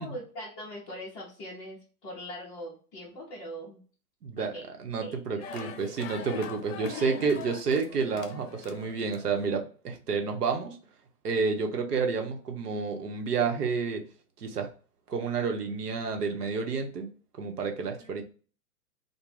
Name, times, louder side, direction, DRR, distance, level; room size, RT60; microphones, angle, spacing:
voice 1, 0.0-3.8 4.4-4.7 5.0-5.7 6.3-6.4 6.8-7.2 17.8-18.1, left 1 dB, 15° left, -9 dB, 0.5 m, -41 dB
voice 2, 4.2-4.5 4.8-10.8 11.2-14.0 14.4-14.7 15.1-17.1 17.4-18.2, right 5 dB, 80° right, 4 dB, 0.8 m, -30 dB
sound 1, 5.4-9.5, left 7 dB, 55° left, 0.6 m, -43 dB
2.4 x 2.1 x 3.1 m, 0.39 s
figure-of-eight pair, 115°, 46 cm